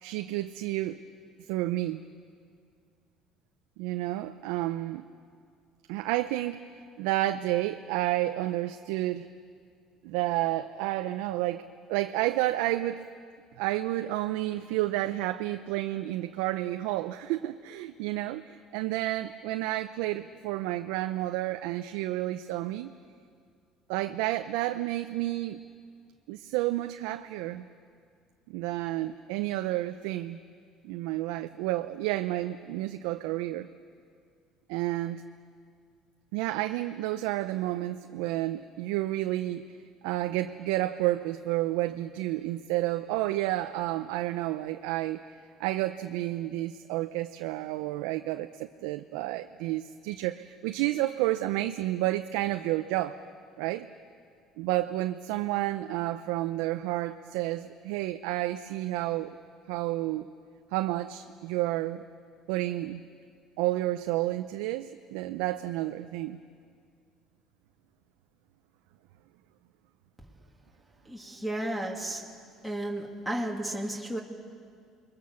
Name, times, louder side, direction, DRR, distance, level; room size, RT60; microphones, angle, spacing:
voice 1, 0.0-1.0 1.5-2.0 3.8-5.1 5.9-6.6 7.0-9.3 10.0-13.0 13.6-22.9 23.9-25.6 26.3-27.7 28.5-30.4 30.8-33.7 34.7-35.2 36.3-39.8 40.0-45.2 45.6-53.2 53.6-53.9 54.6-59.4 59.7-60.3 60.7-62.0 62.5-63.0 63.6-66.4, right 16 dB, 80° right, 8 dB, 0.6 m, -30 dB
voice 2, 71.1-72.2 72.6-74.2, right 1 dB, ahead, 1 dB, 2.9 m, -33 dB
29.0 x 22.0 x 7.0 m, 2.2 s
supercardioid pair, 80°, 0 cm